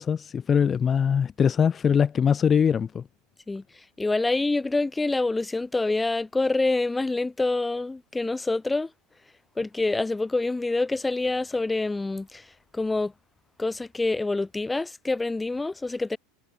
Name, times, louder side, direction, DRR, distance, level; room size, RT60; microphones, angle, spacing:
voice 1, 0.0-3.1, left 7 dB, 30° left, 0.7 m, -22 dB
voice 2, 3.5-8.9 9.6-13.1 13.6-16.2, left 2 dB, 10° left, 1.3 m, -26 dB
hypercardioid pair, 80°, 0 cm